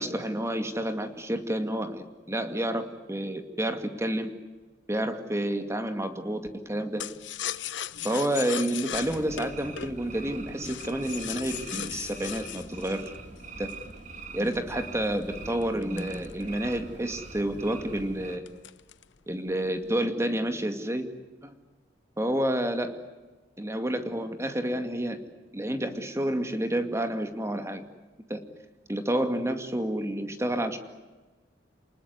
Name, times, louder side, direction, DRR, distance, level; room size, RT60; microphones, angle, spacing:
voice 1, 0.0-4.3 4.9-7.0 8.0-13.1 13.6-13.7 14.3-18.5 19.3-21.1 21.4-21.5 22.2-23.0 23.6-25.2 25.5-27.8 28.3-28.4 28.9-30.8, right 1 dB, 15° right, 7 dB, 2.3 m, -29 dB
sound 1, 7.0-13.9 14.5-16.9 17.3-17.4 17.7-18.0 18.5-19.2 19.5-20.0, left 10 dB, 85° left, 0.9 m, -38 dB
sound 2, 8.9-18.4, right 3 dB, 45° right, 2.7 m, -43 dB
29.0 x 20.0 x 9.8 m, 1.2 s
head